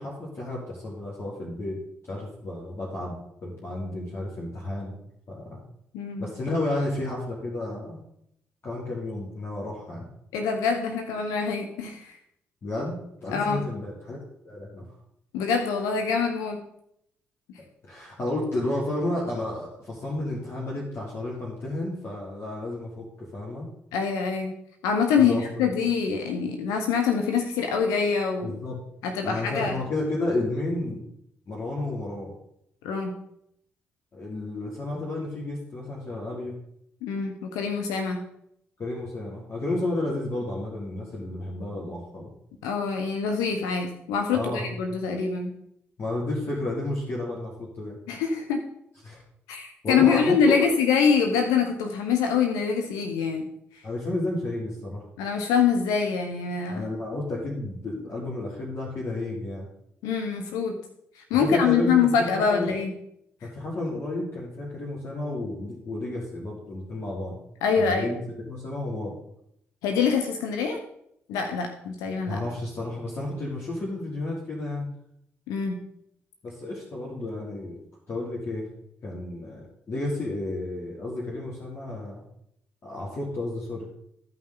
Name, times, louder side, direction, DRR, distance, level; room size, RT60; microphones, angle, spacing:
voice 1, 0.0-3.1 3.4-5.0 5.3-5.6 6.2-8.0 8.6-10.1 12.6-14.2 14.4-14.9 17.9-23.7 25.2-25.7 28.4-28.7 29.2-31.0 31.5-32.3 34.1-36.6 38.8-42.3 44.3-44.7 46.0-48.0 49.0-49.2 49.8-50.7 53.8-55.1 56.7-59.7 61.4-62.7 63.4-67.4 67.8-69.2 72.3-74.9 76.4-77.8 78.1-78.7 79.0-82.2 82.8-83.9, left 2 dB, 45° left, -5 dB, 2.9 m, -31 dB
voice 2, 5.9-6.2 10.3-12.1 13.3-13.6 15.3-16.6 23.9-24.5 24.8-28.6 29.0-29.8 32.8-33.1 37.0-38.2 42.6-45.5 48.1-48.6 49.5-53.4 55.2-56.8 60.0-60.8 61.3-62.9 67.6-68.1 69.8-70.8 71.3-72.4 75.5-75.8, left 6 dB, 75° left, 4 dB, 0.9 m, -25 dB
14.0 x 5.7 x 3.9 m, 0.74 s
hypercardioid pair, 40°, 6 cm